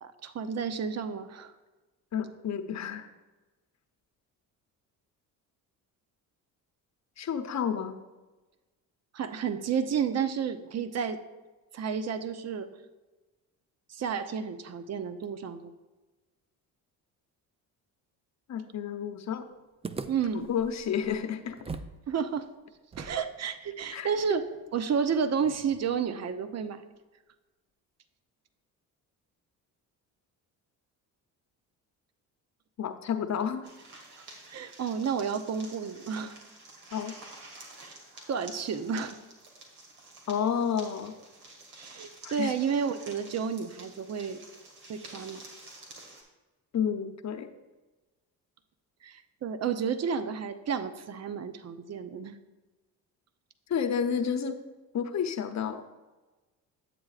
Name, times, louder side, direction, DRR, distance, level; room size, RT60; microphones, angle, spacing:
voice 1, 0.0-1.5 9.1-11.2 11.7-12.7 13.9-15.7 20.1-20.5 22.1-22.5 23.0-24.4 24.7-26.8 34.2-34.3 34.5-36.3 37.8-38.0 38.3-39.2 41.8-44.4 44.9-45.4 49.0-52.4, right 7 dB, 40° right, 10 dB, 0.7 m, -31 dB
voice 2, 2.1-3.1 7.2-8.0 18.5-19.5 20.3-21.6 23.9-24.1 32.8-33.7 36.9-37.1 40.3-41.1 42.2-42.5 46.7-47.5 53.7-54.6 54.9-55.8, left 7 dB, 45° left, 6 dB, 0.8 m, -30 dB
sound 1, 19.8-22.0 22.3-22.4 22.9-26.0, right 4 dB, 15° right, 0.4 m, -43 dB
sound 2, 33.6-46.2, right 2 dB, 75° right, 2.0 m, -50 dB
9.2 x 7.5 x 2.4 m, 1.2 s
supercardioid pair, 65°, 39 cm